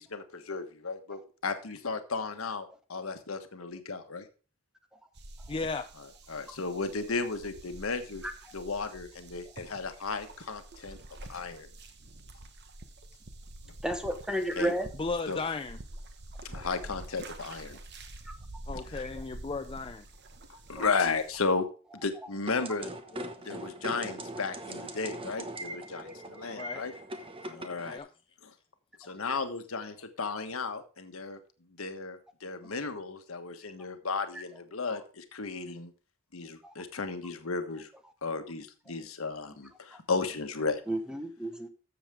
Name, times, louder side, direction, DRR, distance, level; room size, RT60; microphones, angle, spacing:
voice 1, 0.0-4.3 6.3-8.2 8.5-11.0 11.3-11.7 14.6-14.7 15.3-15.4 16.4-17.8 20.5-21.7 22.0-22.9 23.4-26.9 27.4-28.0 29.0-31.4 31.8-35.9 36.3-37.9 38.2-40.8, left 4 dB, 90° left, 8 dB, 1.3 m, -34 dB
sound 1, 5.1-21.4, right 2 dB, 55° right, 1.2 m, -47 dB
voice 2, 5.5-5.9 15.0-15.8 18.7-20.1 23.1-23.3 26.6-26.8 27.9-28.1, left 3 dB, 25° left, 8 dB, 0.5 m, -35 dB
voice 3, 13.8-14.9 27.6-27.7 34.3-34.4 36.6-36.7 40.9-41.7, right 1 dB, 5° right, 7 dB, 1.1 m, -32 dB
sound 2, 22.5-28.0, right 1 dB, 25° right, 1.1 m, -41 dB
13.0 x 7.2 x 3.6 m, 0.36 s
head